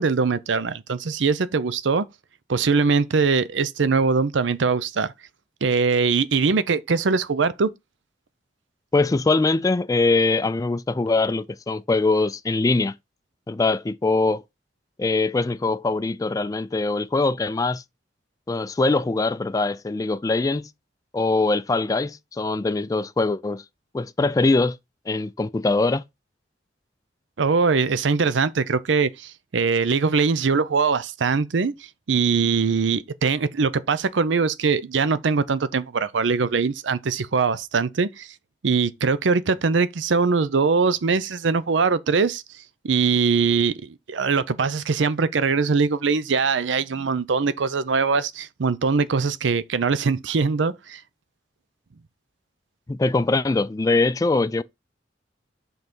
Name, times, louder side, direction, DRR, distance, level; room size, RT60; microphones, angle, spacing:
voice 1, 0.0-2.1 2.5-5.1 5.6-7.7 27.4-31.7 32.1-38.3 38.6-42.4 42.8-51.0, right 5 dB, 80° right, 0.6 m, -22 dB
voice 2, 8.9-12.9 13.5-14.4 15.0-17.8 18.5-20.7 21.1-23.6 23.9-24.8 25.1-26.0 52.9-54.6, left 3 dB, 20° left, 0.3 m, -22 dB
5.5 x 3.9 x 6.0 m
head